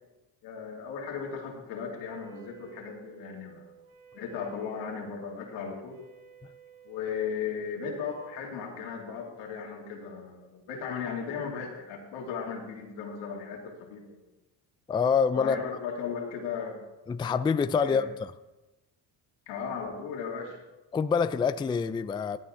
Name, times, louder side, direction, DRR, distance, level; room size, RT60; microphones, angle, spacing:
voice 1, 0.4-3.6 4.1-6.0 6.8-14.2 15.4-16.8 17.8-18.0 19.5-20.6, left 6 dB, 90° left, 2.7 m, -36 dB
Wind instrument woodwind instrument, 1.9-8.6, right 9 dB, 55° right, 3.2 m, -54 dB
voice 2, 14.9-15.6 17.1-18.3 20.9-22.4, left 6 dB, 10° left, 0.3 m, -26 dB
16.0 x 8.7 x 3.8 m
cardioid pair, 95°, 43 cm